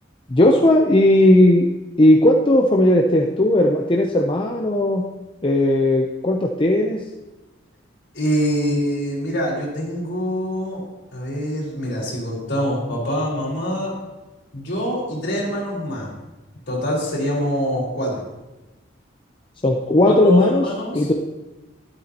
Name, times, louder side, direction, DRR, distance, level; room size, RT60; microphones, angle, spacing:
voice 1, 0.3-1.7 2.0-5.0 5.4-7.0 19.6-20.6 20.9-21.1, left 1 dB, 25° left, 1 dB, 0.7 m, -16 dB
voice 2, 8.1-10.8 11.1-13.9 14.5-16.1 16.7-18.2 20.0-21.1, equal, 60° left, -4 dB, 4.5 m, -24 dB
12.5 x 12.0 x 2.9 m, 1.1 s
head